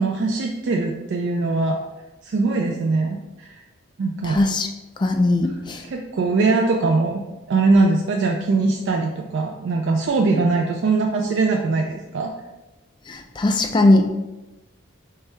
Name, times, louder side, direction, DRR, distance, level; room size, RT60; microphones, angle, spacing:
voice 1, 0.0-1.8 2.2-3.6 4.0-4.4 5.8-7.2 7.5-12.3, right 3 dB, 60° right, 1 dB, 0.3 m, -21 dB
voice 2, 4.3-4.7 5.0-5.8 13.1-14.1, left 2 dB, 20° left, 4 dB, 0.3 m, -19 dB
4.2 x 3.4 x 3.3 m, 1.0 s
head